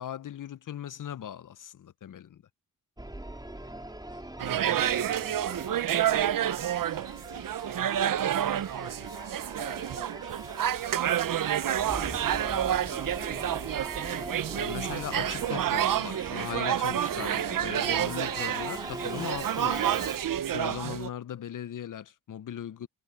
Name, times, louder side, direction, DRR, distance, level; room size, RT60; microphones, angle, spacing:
voice 1, 0.0-2.4 14.5-19.9 20.5-22.9, left 10 dB, 55° left, 0.7 m, -39 dB
Singing / Musical instrument, 3.0-20.3, right 1 dB, 10° right, 3.9 m, -42 dB
voice 2, 3.5-5.9, right 8 dB, 80° right, 4.3 m, -59 dB
sound 1, 4.4-21.1, right 10 dB, 60° right, 0.7 m, -29 dB
cardioid pair, 65°, 37 cm